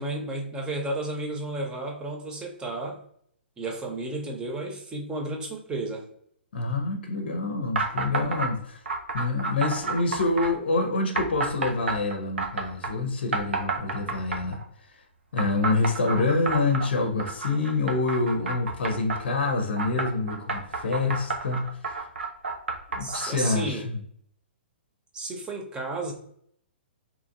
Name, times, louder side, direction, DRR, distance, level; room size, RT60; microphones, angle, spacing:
voice 1, 0.0-3.0 3.6-6.1 23.0-23.9 25.1-26.1, right 2 dB, 15° right, 0.6 m, -32 dB
voice 2, 6.5-8.8 9.1-14.6 15.3-21.6 22.9-24.0, left 3 dB, 65° left, 0.6 m, -26 dB
sound 1, 7.7-8.5 8.9-10.5 11.1-12.9 13.3-14.6 15.4-19.2 19.8-23.4, right 3 dB, 75° right, 0.6 m, -30 dB
2.8 x 2.5 x 2.6 m
figure-of-eight pair, 120°, 6 cm